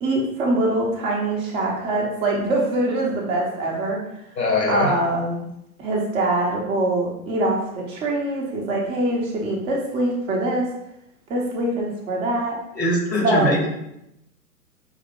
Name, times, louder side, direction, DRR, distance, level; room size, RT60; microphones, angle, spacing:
voice 1, 0.0-4.0 4.7-5.4 5.8-10.7 11.3-12.6 13.2-13.6, right 1 dB, 10° right, -2 dB, 0.5 m, -23 dB
voice 2, 4.4-4.9 12.7-13.7, left 1 dB, 85° left, -1 dB, 1.5 m, -21 dB
4.8 x 2.8 x 3.6 m, 0.82 s
figure-of-eight pair, 110°, 49 cm